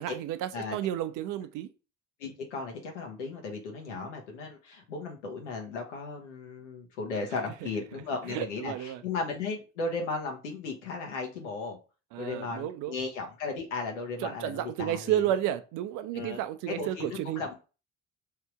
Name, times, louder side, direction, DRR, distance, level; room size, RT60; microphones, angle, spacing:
voice 1, 0.0-1.7 3.9-4.1 8.3-9.0 12.1-13.0 14.2-17.5, right 11 dB, 60° right, 0.6 m, -32 dB
voice 2, 2.2-11.8 12.2-15.2 16.1-16.4 16.7-17.5, left 4 dB, 85° left, 1.0 m, -36 dB
3.4 x 2.8 x 4.6 m
hypercardioid pair, 55°, 34 cm